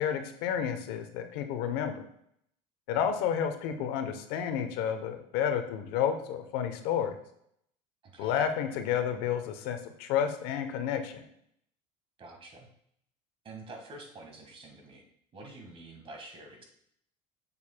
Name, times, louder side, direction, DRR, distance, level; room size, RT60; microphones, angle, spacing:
voice 1, 0.0-2.0 2.9-7.1 8.2-11.3, left 8 dB, 75° left, 7 dB, 0.9 m, -31 dB
voice 2, 8.0-8.3 12.2-12.7 13.4-15.0 15.3-16.6, right 2 dB, 30° right, 2 dB, 1.6 m, -47 dB
7.2 x 6.9 x 2.2 m, 0.70 s
cardioid pair, 130°, 17 cm